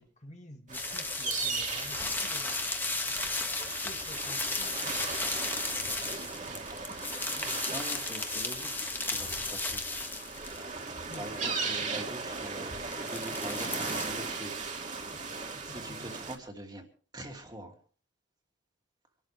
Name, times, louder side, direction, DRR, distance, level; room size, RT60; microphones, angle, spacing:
voice 1, 0.0-2.8 3.8-5.5 6.7-6.8 11.1-11.3 15.3-16.1, left 1 dB, 35° left, 2.1 m, -51 dB
sound 1, 0.7-10.6 11.0-12.5 12.8-14.1, left 3 dB, 10° left, 1.5 m, -34 dB
sound 2, 0.7-16.4, right 4 dB, 40° right, 2.5 m, -38 dB
voice 2, 7.7-9.8 11.2-14.5 15.6-16.9 17.1-17.7, right 1 dB, 20° right, 2.6 m, -44 dB
26.0 x 12.5 x 3.4 m
head